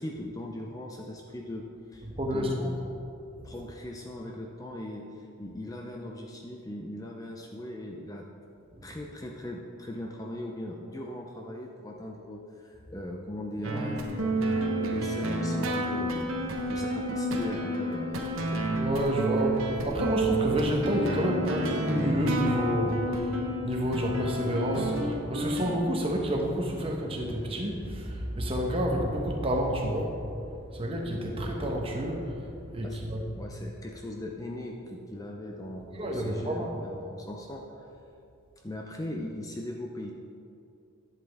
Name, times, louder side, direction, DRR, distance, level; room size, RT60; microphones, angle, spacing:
voice 1, 0.0-1.7 1.9-3.0 3.4-8.3 8.8-18.1 32.8-37.9 38.6-40.1, left 1 dB, 15° left, 0 dB, 0.5 m, -39 dB
voice 2, 2.0-2.8 3.5-3.6 8.8-9.0 18.6-33.2 35.9-36.9, equal, 25° right, 0 dB, 1.0 m, -30 dB
sound 1, 13.6-25.8, right 1 dB, 80° right, 0.9 m, -30 dB
11.0 x 7.4 x 3.5 m, 2.6 s
head